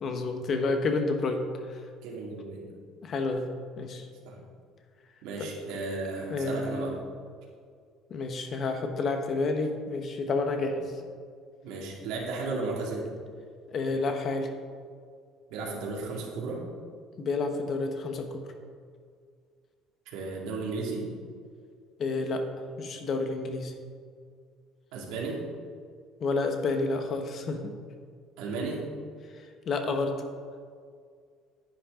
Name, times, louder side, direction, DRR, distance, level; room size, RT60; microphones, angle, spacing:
voice 1, 0.0-1.4 1.7-1.8 3.0-3.5 3.8-4.1 6.3-6.9 8.1-10.8 13.7-14.5 17.2-18.4 22.0-22.4 22.8-23.7 26.2-27.7 29.7-30.2, left 3 dB, 40° left, 6 dB, 1.2 m, -29 dB
voice 2, 2.0-2.7 4.2-4.4 5.2-7.0 10.6-10.7 11.6-13.1 15.5-16.6 20.1-21.1 24.9-25.4 28.4-28.8, right 3 dB, 80° right, -3 dB, 2.4 m, -34 dB
10.5 x 10.0 x 3.8 m, 2.1 s
cardioid pair, 130°, 0 cm